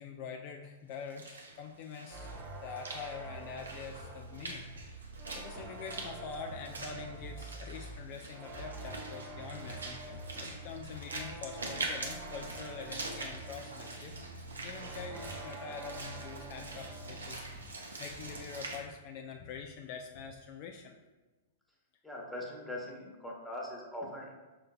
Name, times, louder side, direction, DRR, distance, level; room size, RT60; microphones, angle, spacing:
voice 1, 0.0-2.3 2.6-4.6 5.4-14.2 14.6-20.9, left 6 dB, 45° left, 3 dB, 0.4 m, -45 dB
Walk footsteps / Splash splatter, 0.9-18.8, right 2 dB, 80° right, 0.7 m, -44 dB
sound 1, 2.1-17.8 18.1-18.5, right 2 dB, 30° right, 0.8 m, -46 dB
voice 2, 22.0-24.3, left 1 dB, 5° left, -3 dB, 1.1 m, -41 dB
5.4 x 3.8 x 2.3 m, 1.2 s
hypercardioid pair, 110°, 0 cm